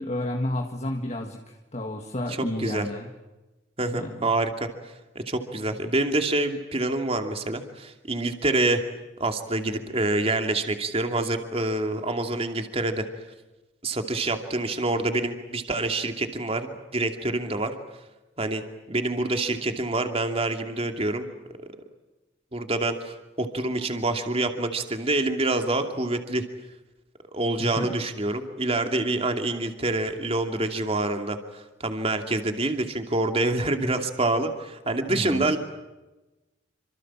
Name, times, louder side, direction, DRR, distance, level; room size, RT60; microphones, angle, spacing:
voice 1, 0.0-3.1 3.9-4.3 27.6-28.0 35.1-35.6, left 1 dB, 35° left, 3 dB, 2.0 m, -31 dB
voice 2, 3.8-4.7 5.1-8.8 9.2-13.0 13.8-17.7 18.4-18.6 18.9-21.2 21.6-21.7 22.5-26.4 27.3-35.6, right 2 dB, 30° right, 6 dB, 2.7 m, -26 dB
28.5 x 26.5 x 7.5 m, 1.1 s
head